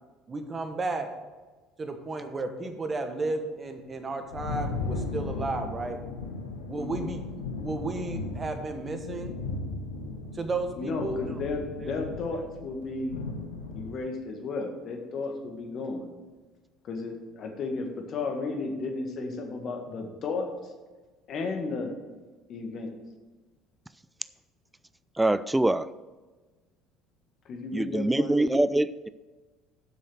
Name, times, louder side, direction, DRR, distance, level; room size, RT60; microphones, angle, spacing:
voice 1, 0.3-1.1 1.8-6.0 6.7-9.3 10.3-11.4 11.8-11.9, right 3 dB, 30° right, 1.4 m, -33 dB
Thunder, 3.8-13.9, left 3 dB, 90° left, 1.1 m, -36 dB
voice 2, 10.8-13.2 13.7-16.1 16.8-20.5 21.3-21.9 22.5-22.9 27.4-28.6, left 3 dB, 50° left, 1.8 m, -33 dB
voice 3, 25.2-25.9 27.7-29.1, right 1 dB, 10° right, 0.3 m, -24 dB
7.6 x 6.4 x 6.2 m
hypercardioid pair, 65°, 0 cm